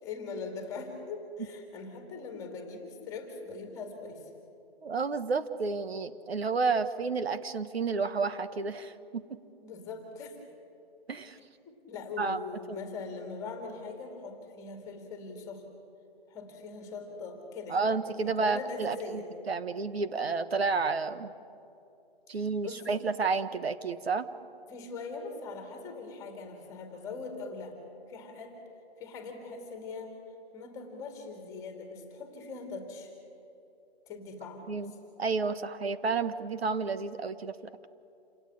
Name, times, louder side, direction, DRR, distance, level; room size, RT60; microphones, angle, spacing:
voice 1, 0.0-4.3 9.6-10.4 11.7-15.6 16.3-17.9 18.2-19.2 22.3-23.0 24.7-27.8 28.1-28.6 29.0-30.1 30.5-33.1 34.1-34.9, left 4 dB, 10° left, 4 dB, 2.2 m, -41 dB
voice 2, 4.8-9.2 11.1-11.4 12.2-12.4 12.7-12.8 17.7-21.3 22.3-24.3 34.7-34.9 35.2-37.7, right 4 dB, 75° right, 12 dB, 1.4 m, -31 dB
28.0 x 17.5 x 8.7 m, 2.7 s
hypercardioid pair, 165°, 31 cm